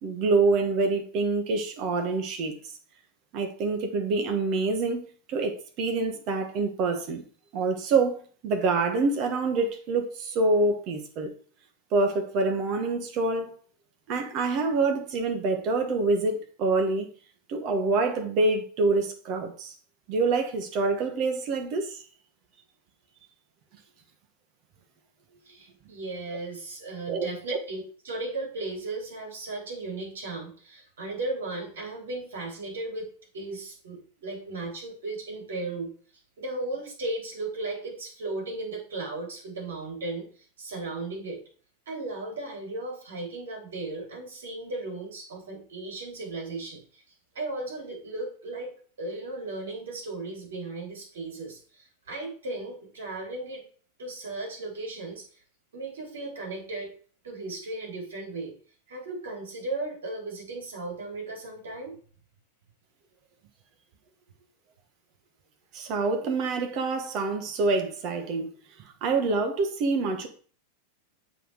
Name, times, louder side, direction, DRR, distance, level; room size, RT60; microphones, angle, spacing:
voice 1, 0.0-2.5 3.3-5.0 5.3-7.2 7.5-11.3 11.9-13.5 14.1-17.1 17.5-19.7 20.1-22.0 27.1-27.6 65.7-68.5 69.0-70.3, right 3 dB, 40° right, 1.6 m, -26 dB
voice 2, 25.5-33.1 33.3-35.9 36.4-40.3 40.6-41.4 41.9-47.0 47.4-48.7 49.0-53.6 54.0-55.2 55.7-56.9 57.2-58.5 58.9-61.9, right 2 dB, 60° right, 3.6 m, -36 dB
7.8 x 4.3 x 4.9 m
figure-of-eight pair, 90°, 0 cm